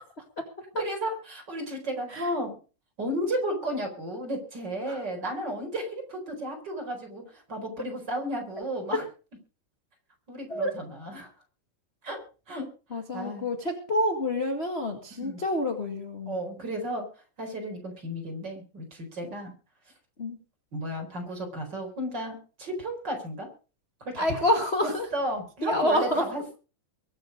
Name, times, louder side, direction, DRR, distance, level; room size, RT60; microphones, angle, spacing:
voice 1, 0.8-2.6 3.0-9.0 10.3-11.3 12.0-12.7 13.1-13.5 15.1-15.4 16.2-17.1 17.4-19.5 20.7-23.5 24.0-24.4 24.8-26.6, equal, 30° right, 3 dB, 4.9 m, -33 dB
voice 2, 12.9-16.4 20.2-20.4 24.2-25.1 25.6-26.3, left 1 dB, 20° left, 4 dB, 1.8 m, -27 dB
23.0 x 8.0 x 5.1 m, 0.36 s
omnidirectional pair, 4.0 m